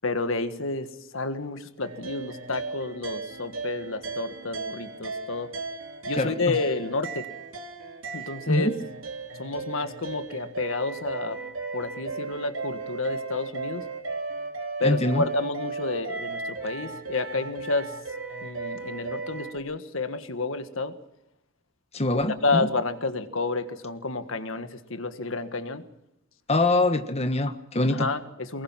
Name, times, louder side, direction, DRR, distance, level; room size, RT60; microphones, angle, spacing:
voice 1, 0.0-5.5 6.1-7.3 8.1-8.7 9.4-11.4 11.7-13.8 14.8-17.9 18.4-20.9 22.4-25.8 27.9-28.6, left 3 dB, 70° left, 10 dB, 1.7 m, -30 dB
sound 1, 1.8-19.6, right 3 dB, 75° right, 3.2 m, -36 dB
voice 2, 6.2-6.6 8.5-8.7 14.8-15.2 21.9-22.6 26.5-28.1, left 2 dB, 30° left, 8 dB, 1.4 m, -24 dB
24.0 x 22.0 x 5.9 m, 0.88 s
head